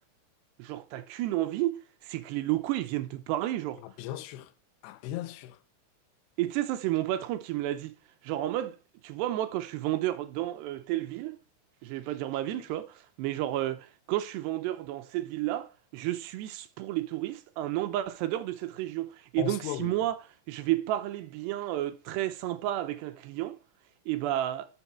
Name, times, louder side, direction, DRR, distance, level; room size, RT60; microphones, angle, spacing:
voice 1, 0.6-3.8 6.4-7.9 8.2-8.8 9.0-11.4 11.8-20.1 20.5-23.6 24.1-24.7, right 14 dB, 85° right, 2.9 m, -31 dB
voice 2, 3.8-4.5 4.8-5.6 12.5-12.6 19.4-20.1, left 13 dB, 85° left, 2.9 m, -37 dB
13.0 x 6.2 x 4.4 m
omnidirectional pair, 4.9 m